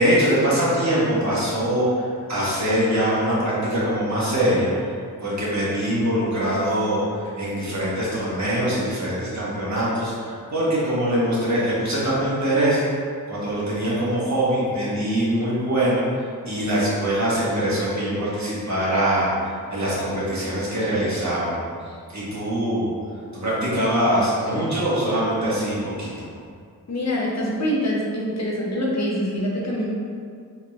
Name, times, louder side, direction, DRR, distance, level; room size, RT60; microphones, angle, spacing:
voice 1, 0.0-4.7 5.2-12.8 13.3-16.0 16.5-21.6 21.8-22.9 23.3-26.3, right 1 dB, 50° right, -8 dB, 1.3 m, -23 dB
voice 2, 26.9-29.9, equal, 45° left, -3 dB, 0.7 m, -25 dB
3.7 x 3.1 x 2.3 m, 2.2 s
cardioid pair, 60°, 37 cm